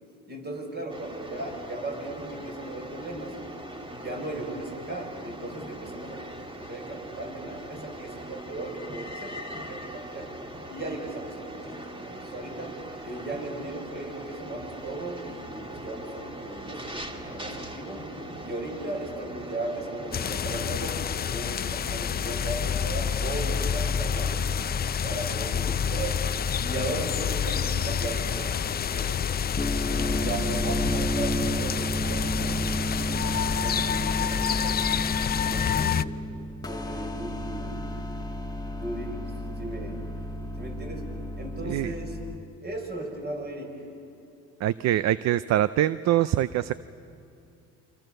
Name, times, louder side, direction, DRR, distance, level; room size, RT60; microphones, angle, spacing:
voice 1, 0.3-3.4 3.9-6.2 6.5-10.3 10.7-12.7 13.0-18.1 18.4-24.5 25.0-26.2 26.6-29.5 29.9-34.9 35.4-36.0 36.6-37.9 38.8-40.0 40.6-41.1 41.4-42.2 42.6-43.8, right 2 dB, 30° right, 1 dB, 6.7 m, -37 dB
sound 1, 0.9-20.2, right 1 dB, 15° right, 2.1 m, -40 dB
sound 2, 20.1-36.0, left 8 dB, 30° left, 0.5 m, -28 dB
sound 3, 29.5-42.4, equal, 10° left, 1.6 m, -31 dB
voice 2, 44.6-46.7, right 12 dB, 55° right, 16 dB, 0.6 m, -24 dB
29.0 x 26.0 x 6.7 m, 2.7 s
supercardioid pair, 90°, 33 cm